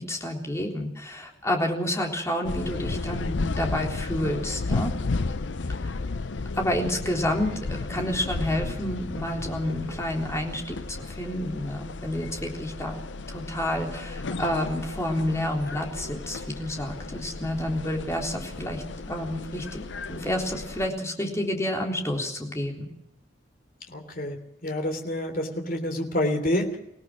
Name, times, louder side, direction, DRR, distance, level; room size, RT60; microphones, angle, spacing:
voice 1, 0.0-4.9 5.8-5.9 6.5-22.9, left 1 dB, 15° left, 1 dB, 3.7 m, -29 dB
sound 1, 2.4-20.9, left 3 dB, 70° left, 0.7 m, -34 dB
voice 2, 23.9-24.4 24.6-26.8, left 1 dB, 50° left, 4 dB, 3.3 m, -27 dB
25.5 x 17.5 x 6.2 m, 0.80 s
head